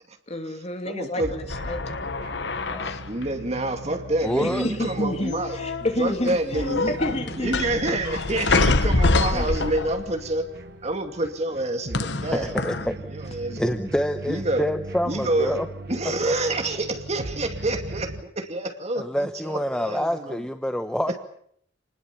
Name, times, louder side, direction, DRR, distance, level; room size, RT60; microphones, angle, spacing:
voice 1, 0.3-2.1 2.8-3.0 4.4-7.5 8.6-9.6, left 1 dB, 35° left, 5 dB, 2.8 m, -30 dB
voice 2, 0.9-1.3 3.1-5.6 6.0-6.9 7.4-10.5 10.8-12.5 12.8-13.8 14.3-14.6 15.1-15.6 15.9-20.4, right 2 dB, 35° right, 5 dB, 2.5 m, -28 dB
sound 1, 1.2-18.2, right 2 dB, 60° right, 1.7 m, -39 dB
sound 2, 1.5-3.2 4.4-5.0 5.3-5.9 6.3-10.2 11.9-12.9, left 3 dB, 70° left, 1.2 m, -25 dB
voice 3, 4.2-4.6 12.3-13.0 13.6-15.7 16.2-16.3 19.0-21.2, equal, 5° left, 7 dB, 1.0 m, -27 dB
28.0 x 20.0 x 7.1 m, 0.65 s
head